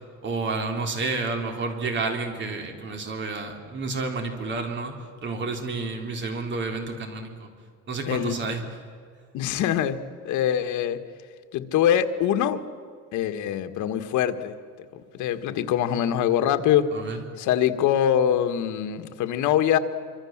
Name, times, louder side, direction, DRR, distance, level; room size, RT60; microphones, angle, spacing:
voice 1, 0.2-4.9 5.2-7.5 7.9-8.6 16.9-17.2, right 3 dB, 40° right, 4 dB, 3.6 m, -30 dB
voice 2, 8.1-8.6 9.3-11.0 11.5-12.6 13.1-14.6 14.9-16.9 17.4-19.8, left 10 dB, 75° left, 8 dB, 1.7 m, -24 dB
26.0 x 25.5 x 7.4 m, 2.1 s
cardioid pair, 175°, 30 cm